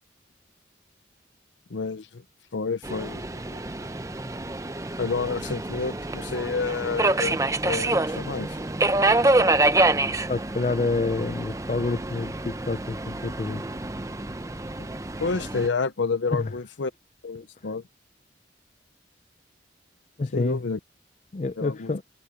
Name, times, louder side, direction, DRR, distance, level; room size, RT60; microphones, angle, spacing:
voice 1, 1.7-2.2 2.5-3.6 5.0-7.4 7.6-8.6 15.2-16.9 17.2-17.8 20.3-20.8 21.6-21.9, left 4 dB, 80° left, 0.7 m, -29 dB
Subway metro underground, 2.8-15.7, right 2 dB, 15° right, 0.6 m, -26 dB
voice 2, 10.3-13.6 14.8-14.9 16.3-16.5 20.2-20.6 21.3-22.0, left 3 dB, 40° left, 0.5 m, -28 dB
head